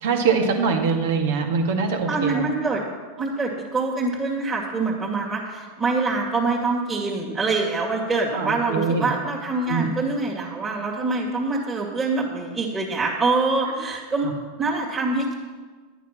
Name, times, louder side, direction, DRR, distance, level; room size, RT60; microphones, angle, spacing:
voice 1, 0.0-2.4 8.3-9.1 9.7-9.9 14.2-14.3, right 5 dB, 75° right, 3 dB, 2.0 m, -23 dB
voice 2, 2.1-2.8 3.2-14.3 14.6-15.3, right 3 dB, 20° right, -4 dB, 2.3 m, -25 dB
11.5 x 9.2 x 6.0 m, 1.4 s
hypercardioid pair, 115°, 0 cm